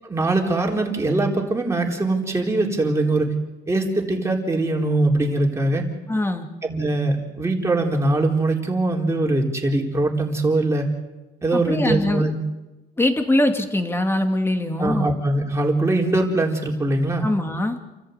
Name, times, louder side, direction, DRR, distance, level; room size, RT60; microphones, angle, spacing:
voice 1, 0.0-3.3 3.7-5.8 6.6-10.9 11.4-12.3 14.8-17.2, right 2 dB, 15° right, 0 dB, 4.2 m, -22 dB
voice 2, 6.1-6.5 11.5-12.3 13.0-15.1 17.2-17.8, left 1 dB, 15° left, 5 dB, 2.6 m, -22 dB
28.5 x 14.0 x 8.3 m, 1.1 s
cardioid pair, 110°, 17 cm